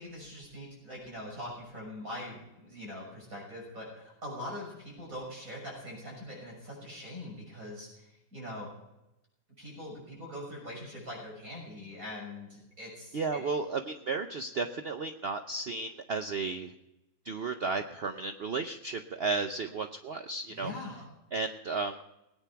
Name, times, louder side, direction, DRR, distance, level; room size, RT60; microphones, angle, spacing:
voice 1, 0.0-8.7 9.6-13.4 20.5-21.1, left 1 dB, 45° right, -2 dB, 6.8 m, -42 dB
voice 2, 13.1-16.7 17.2-20.7 21.3-22.0, right 4 dB, 65° right, 7 dB, 0.6 m, -33 dB
19.0 x 9.2 x 5.8 m, 0.93 s
omnidirectional pair, 2.0 m